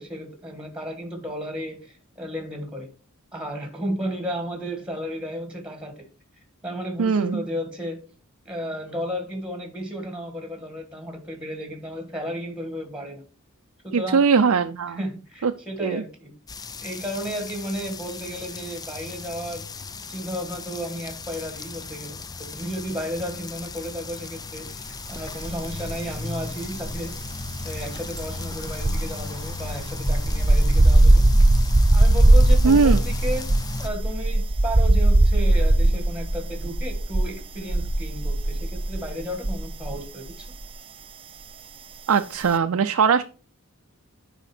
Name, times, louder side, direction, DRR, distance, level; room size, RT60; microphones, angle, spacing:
voice 1, 0.0-2.9 3.3-6.1 6.6-8.0 8.4-13.2 13.8-14.2 14.9-16.3 16.8-19.7 20.1-27.1 27.6-31.2 31.9-33.5 33.8-40.5, equal, 5° right, 1.5 m, -33 dB
voice 2, 7.0-7.4 13.9-15.0 15.4-15.5 15.8-16.0 32.6-33.0 42.1-43.2, right 5 dB, 75° right, 0.5 m, -20 dB
sound 1, 16.5-33.9, left 3 dB, 15° left, 0.4 m, -35 dB
sound 2, 25.4-26.2 26.5-40.0 40.3-40.5, right 1 dB, 25° right, 0.7 m, -19 dB
9.0 x 5.0 x 4.3 m
head